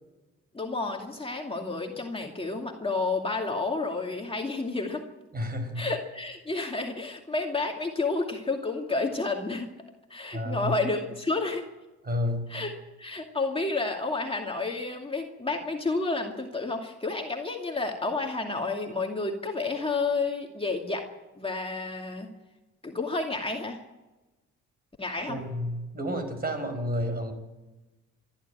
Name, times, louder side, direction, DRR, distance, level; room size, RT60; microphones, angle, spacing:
voice 1, 0.5-5.1 5.8-9.7 10.1-11.6 12.5-21.0 21.4-22.3 22.8-23.8 25.0-25.4, left 3 dB, 20° left, 1 dB, 2.5 m, -30 dB
voice 2, 5.3-5.9 10.3-10.7 12.0-12.5 25.3-27.3, left 1 dB, 30° right, 7 dB, 5.2 m, -30 dB
25.0 x 12.5 x 9.1 m, 1.1 s
cardioid pair, 90°, 30 cm